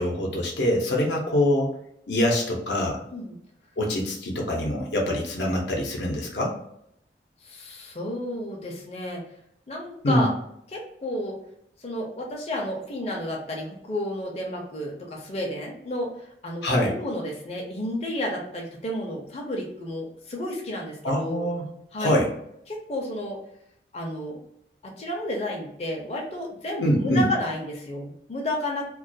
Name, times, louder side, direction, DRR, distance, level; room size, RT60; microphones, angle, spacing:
voice 1, 0.0-1.7 2.1-3.0 3.8-6.5 10.0-10.3 16.6-16.9 21.0-21.7 22.0-22.3 26.8-27.2, left 1 dB, 80° left, -1 dB, 0.6 m, -24 dB
voice 2, 7.4-9.2 9.7-10.3 10.7-11.4 11.8-21.5 21.9-22.1 22.7-23.4 23.9-24.4 24.8-28.9, left 1 dB, 35° left, -1 dB, 0.4 m, -31 dB
2.3 x 2.2 x 2.6 m, 0.74 s
head